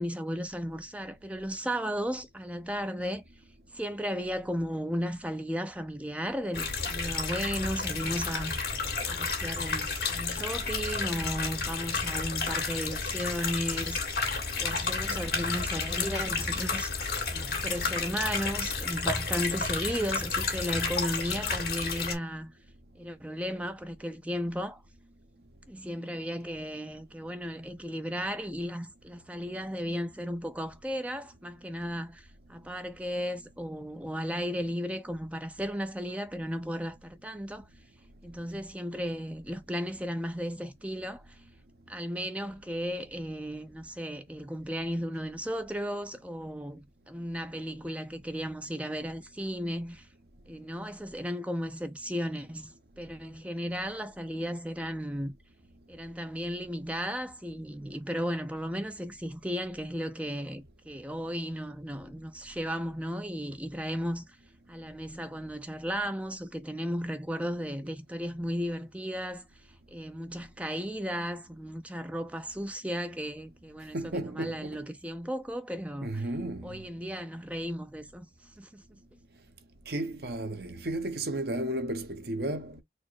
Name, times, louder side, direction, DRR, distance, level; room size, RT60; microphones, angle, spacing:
voice 1, 0.0-3.2 3.7-8.7 9.1-14.0 14.6-17.1 17.3-22.5 23.0-24.8 25.7-37.7 38.2-41.4 41.9-50.1 50.5-55.4 55.9-64.2 64.7-69.4 69.9-76.2 76.6-78.3 78.6-78.8, equal, 5° right, 0.6 m, -35 dB
sound 1, 6.5-22.2, left 4 dB, 60° left, 2.1 m, -31 dB
voice 2, 73.9-74.8 76.0-76.8 79.9-82.8, right 1 dB, 60° right, 0.9 m, -33 dB
4.4 x 2.1 x 4.6 m
head